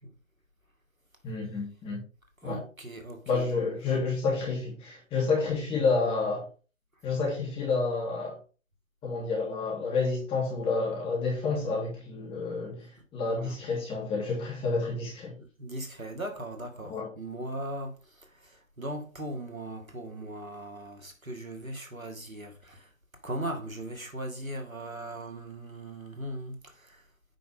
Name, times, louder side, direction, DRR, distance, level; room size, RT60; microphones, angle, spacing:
voice 1, 1.2-2.0 2.4-2.6 3.2-6.5 7.0-8.4 9.0-15.3 16.9-17.1, left 4 dB, 15° left, 3.0 m, -29 dB
voice 2, 2.4-3.6 13.4-13.6 15.4-22.9 23.2-27.0, right 1 dB, 90° right, 2.2 m, -39 dB
9.1 x 5.1 x 3.6 m
figure-of-eight pair, 130°, 40 cm